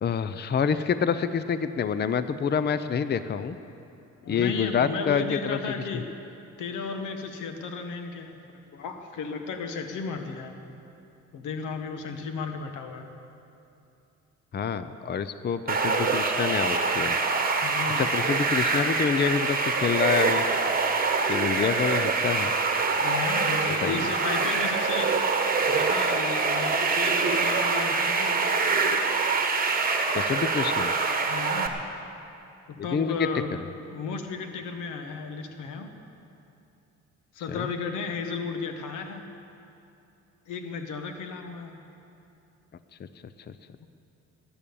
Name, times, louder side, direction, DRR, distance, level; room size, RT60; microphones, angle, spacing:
voice 1, 0.0-3.6 4.3-5.6 14.5-17.2 18.0-20.4 21.3-22.5 23.8-24.1 30.1-30.9 32.8-33.3 37.5-37.7 43.0-43.1 43.5-43.6, left 7 dB, 35° left, 12 dB, 0.6 m, -27 dB
voice 2, 4.2-6.1 6.6-10.5 11.3-13.1 17.6-18.1 22.9-25.2 25.7-28.5 31.2-31.8 32.8-36.0 37.3-39.3 40.5-41.8 43.8-43.9, left 5 dB, 90° left, 6 dB, 1.4 m, -34 dB
sound 1, 15.7-31.7, right 4 dB, 30° right, 1.5 m, -25 dB
19.5 x 8.8 x 7.0 m, 2.8 s
cardioid pair, 90°, 30 cm